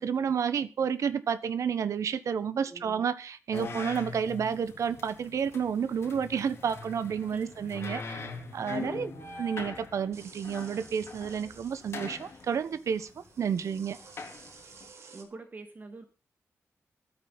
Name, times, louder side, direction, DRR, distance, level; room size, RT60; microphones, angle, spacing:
voice 1, 0.0-8.2 8.5-9.1 9.4-14.0, right 7 dB, 80° right, 1.1 m, -30 dB
voice 2, 2.7-3.0 7.3-9.3 15.1-16.0, right 3 dB, 35° right, 1.9 m, -47 dB
sound 1, 3.5-14.9, left 4 dB, 55° left, 3.6 m, -42 dB
sound 2, 10.1-15.2, right 4 dB, 65° right, 3.3 m, -53 dB
15.0 x 13.0 x 4.1 m
wide cardioid pair, 165°, 5 cm